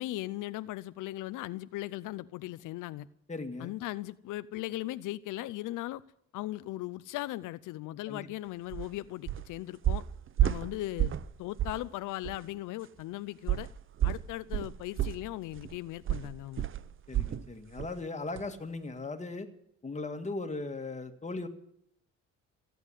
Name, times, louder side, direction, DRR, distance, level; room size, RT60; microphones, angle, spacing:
voice 1, 0.0-3.1 3.6-6.0 6.3-10.0 10.4-13.7 14.0-16.6, left 16 dB, 90° left, 15 dB, 0.6 m, -38 dB
voice 2, 3.3-3.7 8.1-8.3 17.1-19.5 19.8-21.5, left 3 dB, 25° left, 6 dB, 1.9 m, -38 dB
sound 1, 8.7-8.9 9.3-9.5 9.8-11.3 11.6-11.8 12.2-12.4 13.5-17.5 17.8-18.0 18.4-18.5, right 12 dB, 45° right, 0.6 m, -31 dB
15.5 x 9.4 x 9.7 m, 0.74 s
cardioid pair, 90°, 30 cm